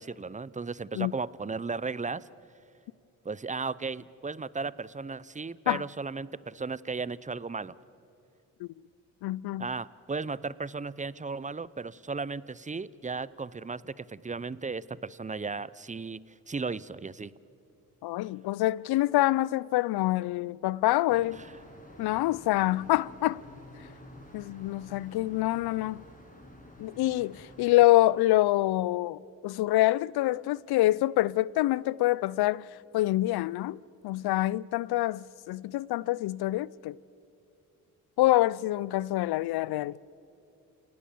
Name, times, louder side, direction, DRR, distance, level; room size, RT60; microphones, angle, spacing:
voice 1, 0.0-2.3 3.2-7.8 9.6-16.2 16.5-17.3, right 4 dB, 20° right, 0.7 m, -35 dB
voice 2, 9.2-9.7 18.0-21.4 22.0-23.4 24.3-26.0 26.8-32.7 32.9-33.8 34.0-37.0 38.2-40.0, left 16 dB, 70° left, 0.6 m, -26 dB
sound 1, 21.1-27.9, left 1 dB, 20° left, 6.6 m, -50 dB
29.5 x 18.0 x 7.1 m
hypercardioid pair, 45°, 39 cm